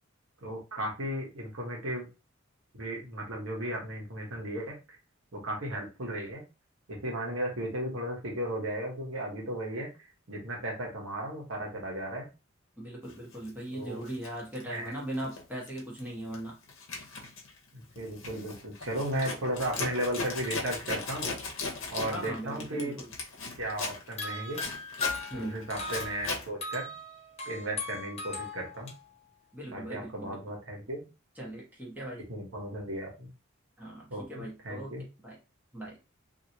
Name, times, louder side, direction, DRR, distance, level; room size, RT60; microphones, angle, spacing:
voice 1, 0.4-2.1 2.7-4.7 5.3-6.4 6.9-9.9 10.3-12.3 13.7-14.0 14.6-14.9 17.7-21.3 21.9-22.9 23.5-24.6 25.3-26.9 27.5-28.9 29.7-31.0 32.3-33.3 34.1-35.0, right 1 dB, 75° right, -1 dB, 1.2 m, -35 dB
voice 2, 12.8-16.5 22.0-23.1 25.3-25.7 29.5-30.4 31.4-32.2 33.8-34.9 35.2-35.4 35.7-36.0, right 1 dB, 10° right, -4 dB, 1.2 m, -39 dB
Zipper (clothing), 13.3-13.5 14.0-15.4 15.7-16.0 16.3-26.5, left 3 dB, 70° left, 0.9 m, -38 dB
sound 1, 24.2-28.9, left 3 dB, 30° left, 0.8 m, -38 dB
3.0 x 2.8 x 2.7 m, 0.29 s
head